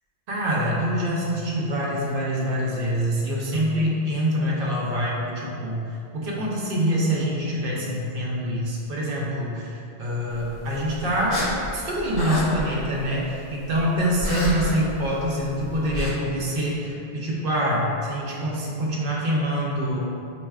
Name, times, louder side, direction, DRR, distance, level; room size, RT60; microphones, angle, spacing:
voice 1, 0.3-20.0, equal, 55° right, -4 dB, 0.8 m, -25 dB
sound 1, 10.3-16.1, left 1 dB, 45° left, 0.5 m, -33 dB
4.3 x 2.7 x 2.3 m, 2.7 s
omnidirectional pair, 1.2 m